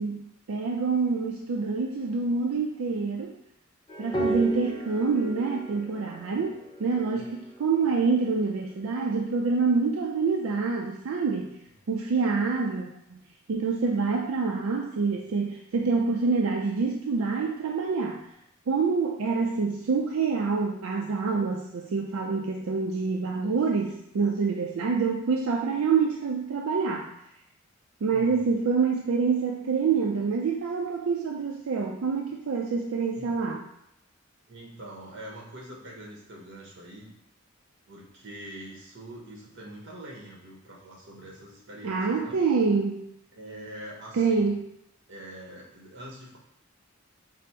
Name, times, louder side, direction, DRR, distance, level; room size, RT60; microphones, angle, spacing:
voice 1, 0.0-3.3 4.0-11.6 11.9-13.2 13.5-18.3 18.7-27.1 28.0-33.6 41.8-43.0 44.1-44.6, right 4 dB, 90° right, 1 dB, 0.4 m, -26 dB
sound 1, 3.9-8.9, right 1 dB, 20° left, 0.6 m, -35 dB
voice 2, 12.0-12.4 28.1-28.5 33.2-33.4 34.5-37.1 37.9-42.4 43.3-44.5 45.1-46.4, right 1 dB, 60° right, -2 dB, 1.2 m, -44 dB
5.1 x 2.0 x 4.3 m, 0.78 s
head